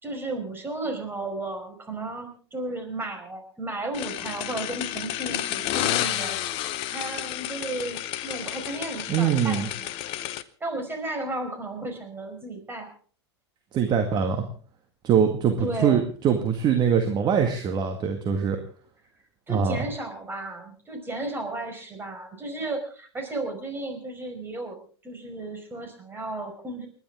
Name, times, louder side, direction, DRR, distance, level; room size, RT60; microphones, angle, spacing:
voice 1, 0.0-6.6 6.9-9.9 10.6-12.9 15.6-16.0 19.5-26.9, right 2 dB, 15° right, 4 dB, 5.2 m, -34 dB
sound 1, 3.9-10.4, left 13 dB, 40° left, 0.9 m, -31 dB
voice 2, 9.1-9.7 13.7-14.4 15.0-18.6 19.5-19.8, right 7 dB, 30° right, 5 dB, 2.0 m, -23 dB
29.5 x 10.5 x 3.7 m, 0.42 s
figure-of-eight pair, 90°, 14 cm